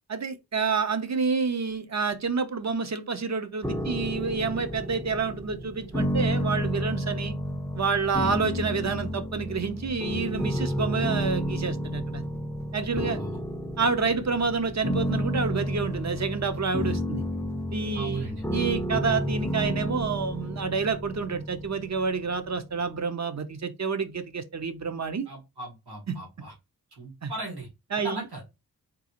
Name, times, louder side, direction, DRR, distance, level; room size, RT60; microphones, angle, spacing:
voice 1, 0.1-7.3 7.7-12.2 12.7-13.2 13.8-17.2 17.7-25.3 27.2-27.3 27.9-28.3, right 5 dB, 45° right, 0.6 m, -28 dB
sound 1, 3.6-22.6, equal, 5° left, 0.5 m, -31 dB
voice 2, 12.8-13.4 17.9-18.4 25.3-26.5 27.0-27.7 28.0-28.4, right 2 dB, 75° right, 1.6 m, -38 dB
3.7 x 2.4 x 2.8 m
wide cardioid pair, 65°, 39 cm